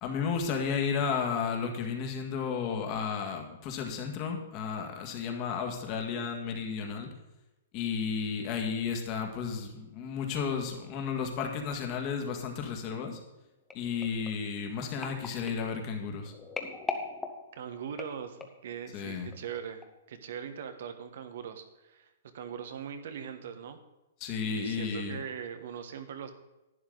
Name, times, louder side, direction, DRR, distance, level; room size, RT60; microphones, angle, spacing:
voice 1, 0.0-7.1 7.7-13.2 13.7-16.3 18.9-19.3 24.2-25.2, left 6 dB, 35° left, 3 dB, 1.7 m, -33 dB
sound 1, 13.7-18.7 19.3-19.5 19.8-19.9, left 4 dB, 10° left, 1.0 m, -41 dB
voice 2, 17.5-19.8 20.1-23.8 24.4-26.3, right 8 dB, 65° right, 8 dB, 1.3 m, -41 dB
11.5 x 9.6 x 3.9 m, 1.0 s
hypercardioid pair, 150°, 0 cm